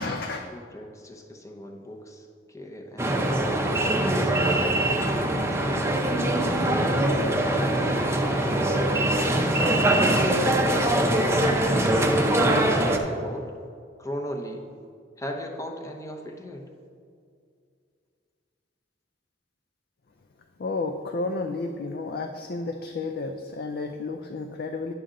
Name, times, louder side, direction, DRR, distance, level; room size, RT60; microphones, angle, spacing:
voice 1, 0.0-0.5 20.6-24.9, left 3 dB, 55° left, 5 dB, 0.4 m, -31 dB
voice 2, 0.5-8.8 9.4-13.5 14.0-14.7 15.2-16.7, left 1 dB, 15° left, 2 dB, 0.8 m, -37 dB
sound 1, 3.0-13.0, right 1 dB, 15° right, 0.6 m, -23 dB
9.9 x 6.8 x 3.8 m, 2.3 s
head